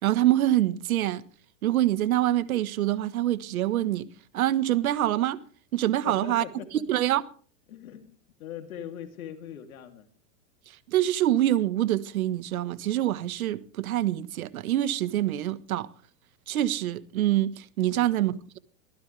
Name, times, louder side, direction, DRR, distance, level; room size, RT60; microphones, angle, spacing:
voice 1, 0.0-1.2 1.6-4.1 4.3-5.4 5.7-6.4 6.9-7.2 10.9-15.9 16.5-18.6, right 13 dB, 85° right, 1.6 m, -25 dB
voice 2, 6.0-6.8 7.7-10.1 17.9-18.2, left 9 dB, 90° left, 3.2 m, -41 dB
24.0 x 16.0 x 3.4 m
supercardioid pair, 140°, 41 cm